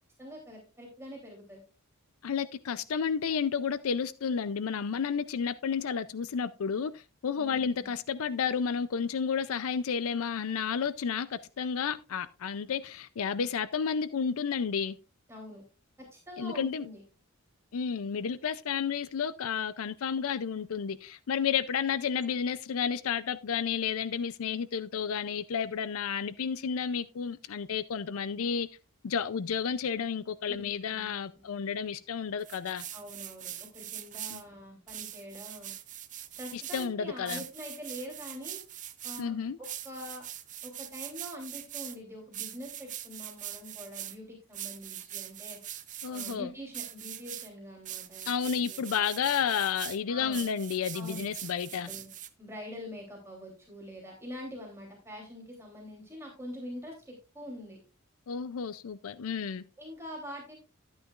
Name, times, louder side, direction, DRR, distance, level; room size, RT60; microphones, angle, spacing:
voice 1, 0.2-1.6 7.3-8.0 15.3-15.6 16.0-17.0 30.5-31.5 32.9-35.7 36.4-38.6 39.0-39.3 39.6-40.2 40.6-45.6 46.1-48.3 48.7-48.9 50.1-50.5 50.9-51.3 51.8-52.1 52.4-57.8 59.8-60.5, equal, 10° right, 3.1 m, -44 dB
voice 2, 2.2-15.0 16.4-16.9 17.7-28.7 29.0-32.8 34.3-34.4 36.5-37.4 39.2-39.6 46.0-46.5 48.3-51.9 58.3-59.6, left 6 dB, 70° left, 0.4 m, -31 dB
sound 1, 32.4-34.4 34.9-36.9 37.3-39.2 39.6-42.0 42.3-44.2 44.5-46.4 46.7-47.5 47.8-50.0 50.3-52.3, right 11 dB, 35° right, 0.7 m, -42 dB
12.5 x 8.9 x 2.4 m
head